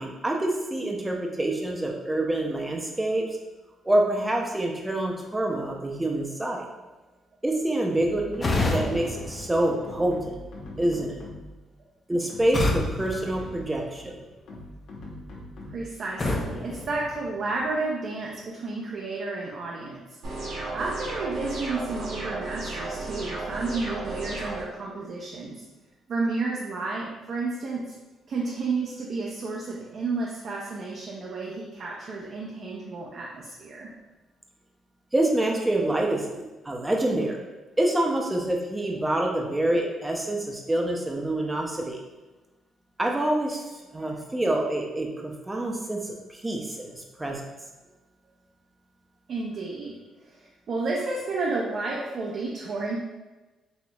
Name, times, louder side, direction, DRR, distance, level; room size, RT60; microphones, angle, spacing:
voice 1, 0.0-3.3 3.8-6.7 7.4-10.2 10.8-11.2 12.1-14.1 35.1-37.4 37.8-42.0 43.0-43.7 43.9-47.4, right 1 dB, 15° right, 0 dB, 0.5 m, -26 dB
sound 1, 7.9-9.5 9.8-11.6 12.2-13.8 14.5-16.0, left 1 dB, 75° left, 0.8 m, -42 dB
sound 2, 8.4-10.4 12.5-14.2 16.2-17.8, left 2 dB, 30° left, 0.5 m, -30 dB
voice 2, 15.7-20.0 20.7-25.6 26.1-27.9 28.3-33.9 49.3-53.0, right 3 dB, 55° right, -3 dB, 0.5 m, -31 dB
sound 3, 20.2-24.6, right 2 dB, 80° right, 1.1 m, -34 dB
4.1 x 2.8 x 2.3 m, 1.2 s
cardioid pair, 90°, 0 cm